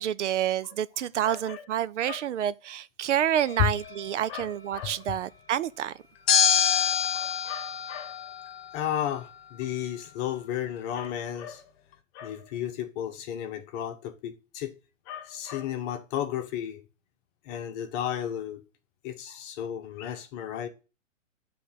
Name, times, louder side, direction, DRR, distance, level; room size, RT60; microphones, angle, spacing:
voice 1, 0.0-5.9, right 11 dB, 65° right, 0.6 m, -28 dB
voice 2, 1.2-1.6 2.0-2.2 3.6-3.7 4.3-5.2 7.1-8.3 8.7-11.7 12.1-14.8 15.1-16.8 17.4-18.6 19.0-20.7, left 10 dB, 30° left, 1.1 m, -33 dB
sound 1, 3.4-4.3 6.3-8.9, left 8 dB, 50° left, 1.1 m, -26 dB
9.8 x 3.4 x 6.6 m
hypercardioid pair, 130°, 38 cm